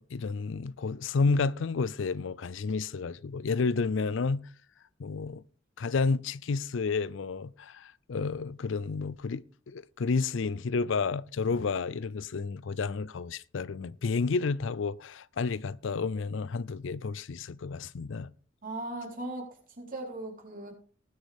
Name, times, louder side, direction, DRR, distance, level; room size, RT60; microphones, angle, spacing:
voice 1, 0.1-4.5 5.0-5.4 5.8-18.3, left 4 dB, 70° left, 0.5 m, -31 dB
voice 2, 18.6-20.7, right 2 dB, 45° right, 4.1 m, -38 dB
19.0 x 7.9 x 3.5 m
head